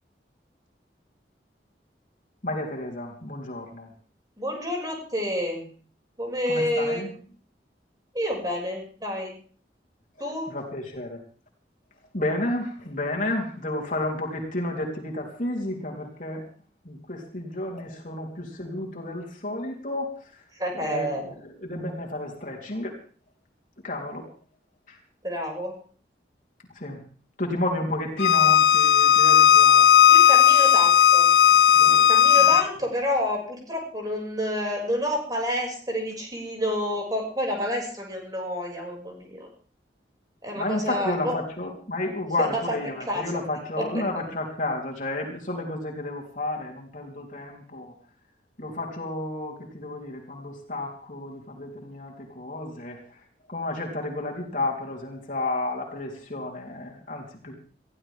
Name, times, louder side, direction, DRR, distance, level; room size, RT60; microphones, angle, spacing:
voice 1, 2.4-3.9 6.5-7.1 10.5-11.2 12.1-16.4 16.9-20.2 20.8-21.3 21.6-22.9 23.8-24.3 26.8-27.0 27.4-29.9 31.7-32.1 32.4-32.5 40.6-47.9 48.6-53.0 53.5-57.6, left 2 dB, 45° left, -1 dB, 3.8 m, -31 dB
voice 2, 4.4-5.7 6.2-7.0 8.1-9.3 10.2-10.5 20.5-21.3 25.2-25.7 30.1-31.3 32.1-39.5 40.4-41.4 42.4-42.8 43.1-43.2 43.8-44.0, equal, 20° right, 0 dB, 6.5 m, -29 dB
Bowed string instrument, 28.2-32.6, left 9 dB, 75° left, 0.6 m, -16 dB
22.0 x 16.0 x 3.7 m, 0.42 s
head